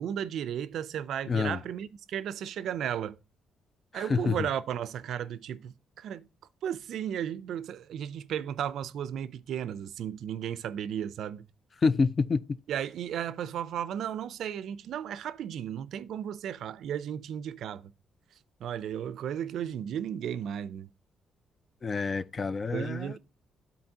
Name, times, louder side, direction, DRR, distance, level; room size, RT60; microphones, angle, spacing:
voice 1, 0.0-3.2 3.9-6.3 6.6-11.5 12.7-17.9 18.6-20.9 22.7-23.2, right 9 dB, 75° right, 0.4 m, -34 dB
voice 2, 1.3-1.6 3.9-4.5 11.8-12.6 21.8-23.2, left 4 dB, 35° left, 0.3 m, -28 dB
12.0 x 4.0 x 2.8 m
cardioid pair, 90°, 0 cm